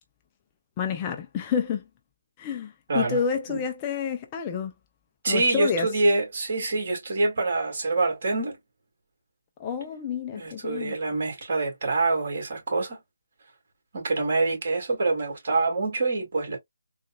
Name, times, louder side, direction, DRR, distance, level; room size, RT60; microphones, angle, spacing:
voice 1, 0.8-1.8 2.4-4.7 5.3-5.9 9.6-11.0, left 7 dB, 20° left, 0.4 m, -29 dB
voice 2, 5.2-8.6 10.3-13.0 13.9-16.6, right 3 dB, 45° right, 2.0 m, -25 dB
3.9 x 2.3 x 2.3 m
figure-of-eight pair, 155°, 0 cm